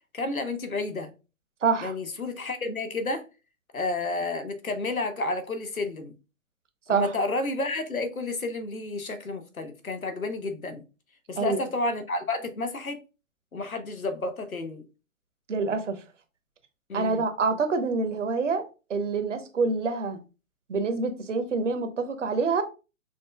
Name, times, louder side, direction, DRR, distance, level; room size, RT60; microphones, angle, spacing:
voice 1, 0.1-1.1 1.8-3.2 3.7-6.1 6.9-10.8 11.3-13.0 13.5-14.8 16.9-17.2, left 2 dB, 85° left, 1.0 m, -31 dB
voice 2, 1.6-1.9 6.9-7.1 11.4-11.6 15.5-16.0 16.9-18.6 18.9-20.2 20.7-22.6, right 4 dB, 60° right, 0.9 m, -26 dB
6.3 x 2.6 x 2.2 m
figure-of-eight pair, 130°, 41 cm